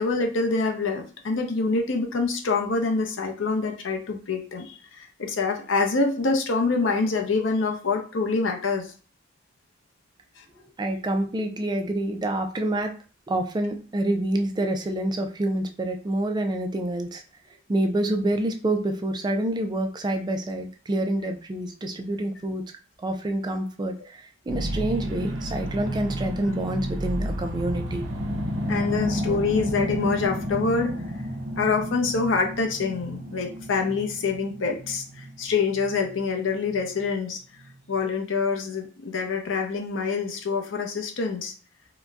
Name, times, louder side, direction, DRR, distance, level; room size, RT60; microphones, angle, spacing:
voice 1, 0.0-8.9 10.4-10.5 28.7-30.9 31.6-37.4 37.9-41.5, left 4 dB, 85° left, 3 dB, 0.6 m, -26 dB
voice 2, 10.8-12.9 13.3-17.2 17.7-22.6 23.0-28.0, right 1 dB, 20° right, 5 dB, 0.3 m, -27 dB
sound 1, 24.5-37.1 37.6-37.7, equal, 75° right, 0.6 m, -31 dB
3.9 x 2.1 x 2.3 m, 0.38 s
head